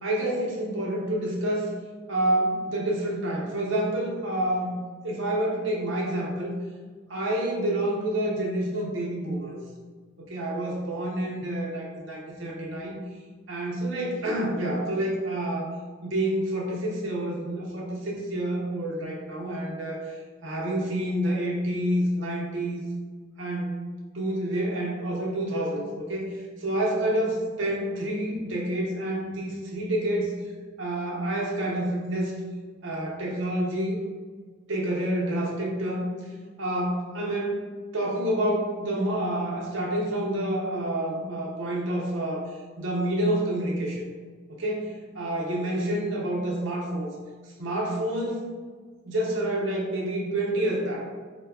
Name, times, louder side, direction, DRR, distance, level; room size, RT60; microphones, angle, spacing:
voice 1, 0.0-1.7 2.1-4.8 5.0-6.5 7.1-9.6 10.2-13.0 13.5-15.7 16.0-22.8 23.4-23.8 24.1-30.3 30.8-32.3 32.8-34.0 34.7-36.1 36.6-37.7 37.9-42.4 42.8-44.0 44.5-47.1 47.6-48.4 49.0-51.0, right 1 dB, 80° right, -3 dB, 0.8 m, -28 dB
4.4 x 2.1 x 2.3 m, 1.5 s
head